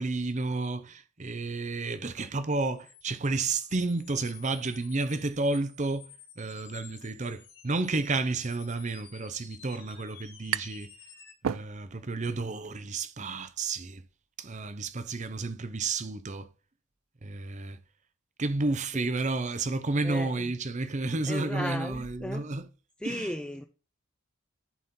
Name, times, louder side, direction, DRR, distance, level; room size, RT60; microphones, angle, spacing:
voice 1, 0.0-6.1 6.4-10.9 11.4-14.0 14.4-16.5 17.2-17.8 18.4-22.7 23.0-23.3, right 3 dB, 30° right, 0.6 m, -31 dB
sound 1, 2.8-11.3, left 8 dB, 50° left, 2.1 m, -52 dB
sound 2, 10.2-10.9 11.2-12.2, right 9 dB, 70° right, 0.3 m, -34 dB
voice 2, 20.0-20.5 21.3-22.4 23.0-23.6, left 1 dB, 5° left, 0.4 m, -36 dB
11.0 x 4.3 x 3.7 m
head